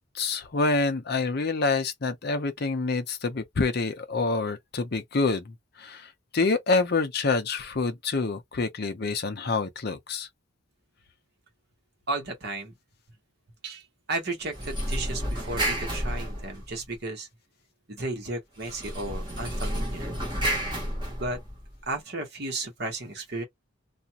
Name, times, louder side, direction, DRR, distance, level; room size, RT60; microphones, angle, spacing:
voice 1, 0.1-6.1 6.3-10.3, left 3 dB, 50° left, 0.6 m, -27 dB
voice 2, 12.1-12.7 13.6-17.3 17.9-20.2 21.2-21.4 21.9-23.4, right 2 dB, 50° right, 1.0 m, -34 dB
sound 1, 14.4-17.0 18.6-21.8, equal, 20° right, 1.1 m, -31 dB
2.4 x 2.1 x 2.8 m
head